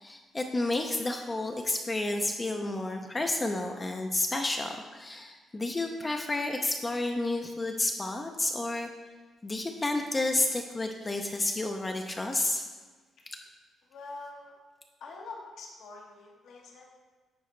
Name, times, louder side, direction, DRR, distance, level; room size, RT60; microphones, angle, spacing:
voice 1, 0.0-8.9 9.4-12.6, left 2 dB, 20° left, 3 dB, 0.4 m, -31 dB
voice 2, 13.9-14.5 15.0-16.8, left 3 dB, 75° left, -1 dB, 1.0 m, -45 dB
9.4 x 4.1 x 3.1 m, 1.4 s
cardioid pair, 100°, 0 cm